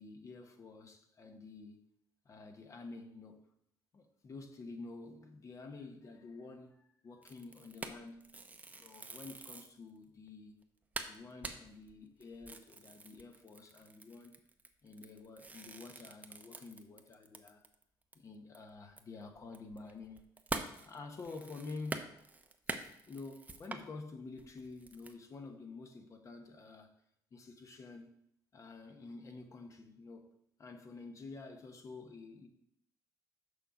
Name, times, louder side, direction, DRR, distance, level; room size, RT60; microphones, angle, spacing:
voice 1, 0.0-1.8 2.2-3.4 3.9-8.2 8.8-10.5 11.0-14.3 14.8-17.6 18.1-20.2 20.8-22.1 23.1-26.9 27.3-28.1 28.5-30.3 30.6-32.5, left 3 dB, 40° left, 1.1 m, -49 dB
sound 1, 7.2-9.8 10.3-10.4 10.6-10.7 10.9-17.8 18.1-18.2 18.5-23.9 24.4-25.1, right 3 dB, 20° right, 0.7 m, -45 dB
6.7 x 5.7 x 4.9 m
cardioid pair, 100°, 9 cm